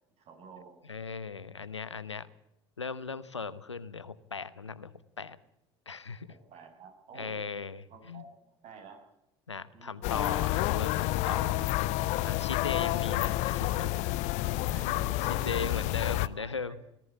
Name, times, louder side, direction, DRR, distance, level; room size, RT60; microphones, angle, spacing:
voice 1, 0.2-0.8 6.3-7.4 7.9-8.3 8.6-9.0 9.7-10.2 14.5-16.8, right 4 dB, 50° right, 4 dB, 6.6 m, -50 dB
voice 2, 0.9-2.3 2.8-5.4 5.9-6.3 7.1-8.2 9.5-11.7 12.2-14.1 14.7-14.9 15.3-16.7, left 5 dB, 90° left, 16 dB, 0.8 m, -38 dB
sound 1, 10.0-16.3, left 17 dB, 55° left, 0.7 m, -29 dB
19.5 x 14.5 x 9.4 m, 0.85 s
figure-of-eight pair, 65°, 14 cm